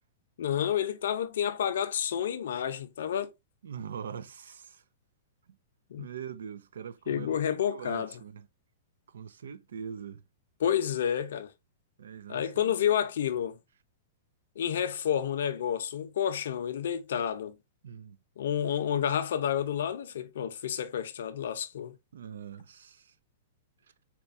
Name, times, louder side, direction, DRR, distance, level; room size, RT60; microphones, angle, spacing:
voice 1, 0.4-3.3 5.9-6.1 7.1-8.1 10.6-11.5 12.3-13.6 14.6-17.6 18.4-21.9, left 9 dB, 75° left, 0.6 m, -30 dB
voice 2, 3.6-4.8 6.0-7.4 7.7-8.5 9.1-10.2 12.0-12.7 17.8-18.2 22.1-23.1, right 7 dB, 85° right, 0.4 m, -42 dB
4.3 x 2.3 x 2.6 m
hypercardioid pair, 145°, 0 cm